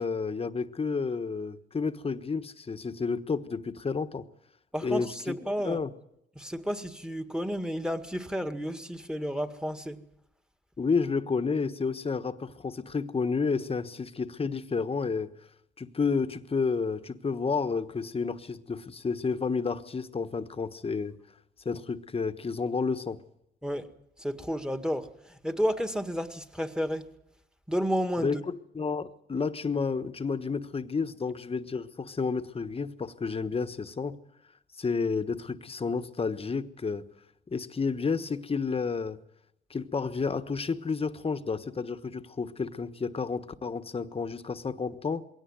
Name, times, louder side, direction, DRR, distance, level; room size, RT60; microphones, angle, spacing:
voice 1, 0.0-4.3 4.8-5.3 5.6-5.9 10.8-15.3 15.8-21.2 21.6-23.2 28.2-34.2 34.8-37.0 37.5-39.2 39.7-45.2, left 5 dB, 30° left, 1.3 m, -31 dB
voice 2, 4.7-5.8 6.4-10.0 23.6-23.9 24.2-27.1 27.7-28.4, equal, 5° right, 1.9 m, -31 dB
22.0 x 17.5 x 9.5 m
cardioid pair, 90°, 20 cm